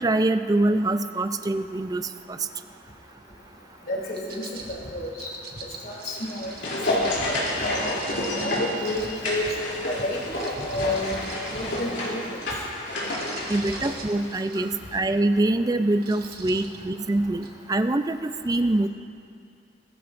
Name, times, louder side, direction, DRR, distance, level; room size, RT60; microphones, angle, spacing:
voice 1, 0.0-2.0 2.3-2.4 13.5-18.9, right 2 dB, 20° right, 10 dB, 0.4 m, -24 dB
voice 2, 3.9-5.3 5.8-6.5 6.9-9.5 9.8-11.2 11.5-12.2, left 1 dB, 55° left, -3 dB, 2.9 m, -31 dB
sound 1, 4.1-9.7 10.3-12.2 12.9-14.7 15.2-15.4 15.9-16.8 17.4-17.5, right 5 dB, 55° right, 1.3 m, -44 dB
sound 2, 6.0-14.7 14.9-15.0, left 1 dB, 75° left, 3.1 m, -29 dB
20.5 x 14.0 x 2.6 m, 2.4 s
head